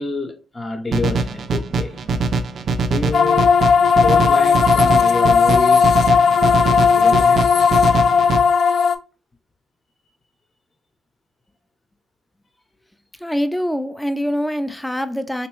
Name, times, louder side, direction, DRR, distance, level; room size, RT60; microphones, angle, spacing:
voice 1, 0.0-2.2 2.8-3.5 4.0-7.4, left 3 dB, 25° left, 0.8 m, -28 dB
sound 1, 0.9-8.4, right 3 dB, 55° right, 0.4 m, -23 dB
sound 2, 3.1-9.0, left 6 dB, 65° left, 0.4 m, -15 dB
voice 2, 13.2-15.5, equal, 5° left, 0.4 m, -24 dB
3.4 x 2.9 x 3.1 m
cardioid pair, 90°, 0 cm